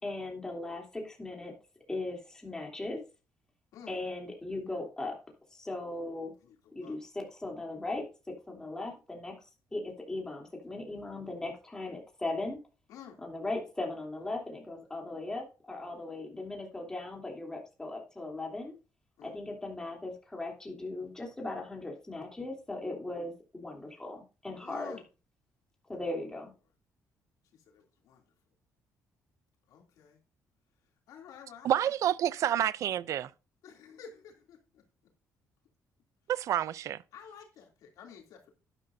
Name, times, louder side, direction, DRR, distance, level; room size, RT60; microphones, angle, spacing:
voice 1, 0.0-1.5 1.9-3.0 3.9-5.2 5.5-6.3 6.7-9.3 9.7-12.6 13.2-18.7 19.2-25.0 25.9-26.5, left 2 dB, 10° left, 3.1 m, -38 dB
voice 2, 6.4-7.0 12.9-13.2 19.2-19.4 24.6-25.0 27.5-28.2 29.7-30.2 31.1-31.9 33.6-34.8 37.1-38.5, left 7 dB, 80° left, 2.8 m, -51 dB
voice 3, 31.6-33.3 36.3-37.0, right 11 dB, 60° right, 0.5 m, -28 dB
12.0 x 11.0 x 2.7 m
cardioid pair, 150°, 6 cm